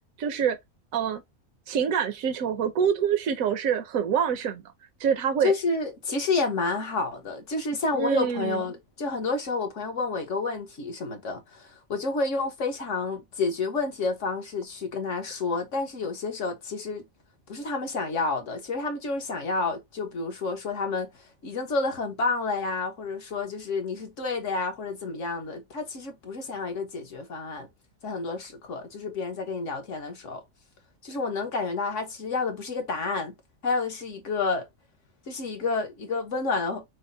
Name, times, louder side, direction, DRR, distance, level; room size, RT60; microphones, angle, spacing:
voice 1, 0.2-0.6 0.9-1.2 1.7-4.6 5.0-5.5 7.9-8.6, right 7 dB, 80° right, 1.2 m, -25 dB
voice 2, 5.4-17.0 17.5-21.1 21.4-27.7 28.0-30.4 31.0-33.3 33.6-34.7 35.3-36.8, left 3 dB, 65° left, 1.5 m, -29 dB
6.1 x 2.1 x 3.9 m
omnidirectional pair, 1.4 m